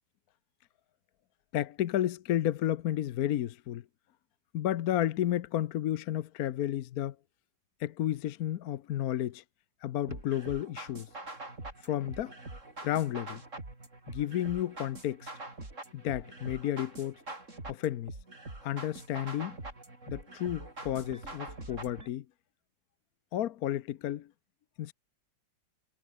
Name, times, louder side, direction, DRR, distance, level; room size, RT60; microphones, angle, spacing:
voice 1, 1.5-3.8 4.5-7.2 7.8-9.4 9.8-11.1 11.8-12.4 12.8-13.4 14.1-15.3 15.9-17.2 17.7-18.2 18.6-19.6 20.1-22.2 23.3-24.3 24.8-24.9, left 12 dB, 65° left, 1.1 m, -32 dB
sound 1, 10.1-22.1, right 2 dB, 40° right, 5.2 m, -44 dB
omnidirectional pair, 2.0 m